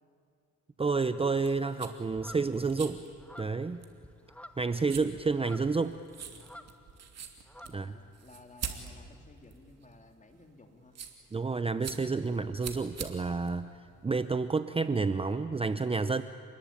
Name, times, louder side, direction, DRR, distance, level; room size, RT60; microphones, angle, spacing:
voice 1, 0.8-3.0 3.4-3.8 4.6-6.0 7.7-8.0 11.3-13.7 14.0-16.2, right 4 dB, 20° right, 12 dB, 0.7 m, -30 dB
sound 1, 1.3-14.5, right 7 dB, 55° right, 3.0 m, -46 dB
sound 2, 2.1-7.1 7.3-8.3, equal, 5° left, 1.5 m, -52 dB
voice 2, 7.6-11.0, left 3 dB, 25° left, 4 dB, 3.4 m, -56 dB
28.5 x 20.5 x 9.0 m, 2.7 s
cardioid pair, 90°, 30 cm